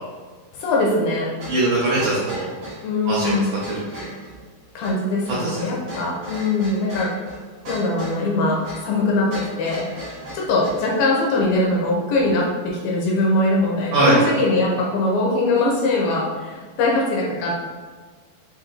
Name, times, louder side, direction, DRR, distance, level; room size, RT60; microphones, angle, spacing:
voice 1, 0.5-1.3 2.8-3.6 4.8-7.1 7.7-9.9 10.3-17.5, left 2 dB, 85° left, -3 dB, 2.3 m, -21 dB
sound 1, 1.4-10.9, equal, 70° right, 1.0 m, -37 dB
voice 2, 1.5-2.5 3.1-3.4 3.7-4.0 5.3-5.7 13.9-14.2, right 2 dB, 85° right, -6 dB, 1.7 m, -21 dB
7.4 x 2.6 x 2.5 m, 1.4 s
omnidirectional pair, 4.7 m